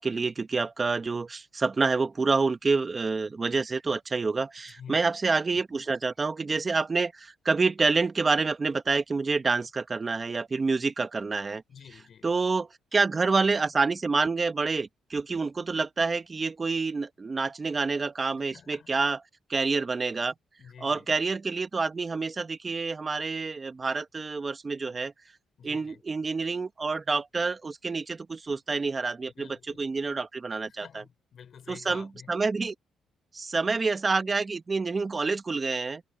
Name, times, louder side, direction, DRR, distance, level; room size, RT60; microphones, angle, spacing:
voice 1, 0.0-11.6 12.2-19.2 19.5-20.3 20.8-25.1 25.6-29.5 29.8-30.8 31.7-32.7 33.3-36.0, right 4 dB, 30° right, 1.3 m, -28 dB
voice 2, 4.6-5.1 11.7-12.3 18.4-19.0 20.6-21.1 25.6-26.0 29.3-29.9 30.7-32.3, left 7 dB, 55° left, 6.0 m, -49 dB
cardioid pair, 90°, 0 cm